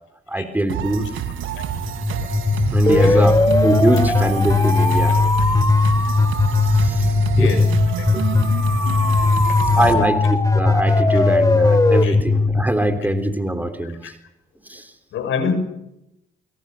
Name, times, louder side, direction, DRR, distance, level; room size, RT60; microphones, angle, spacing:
voice 1, 0.3-1.1 2.7-5.2 6.6-7.5 8.1-8.4 9.7-14.2 14.6-14.9, right 1 dB, 10° right, 8 dB, 3.3 m, -23 dB
sound 1, 0.7-10.0, right 9 dB, 85° right, 5.1 m, -28 dB
sound 2, 1.8-13.7, left 3 dB, 15° left, 3.1 m, -18 dB
voice 2, 2.8-3.2 7.0-7.6 8.0-8.1 9.3-10.1 12.0-12.2 13.8-14.1 15.1-15.5, left 6 dB, 80° left, 9 dB, 6.6 m, -28 dB
29.0 x 24.5 x 6.8 m, 0.84 s
cardioid pair, 90°, 20 cm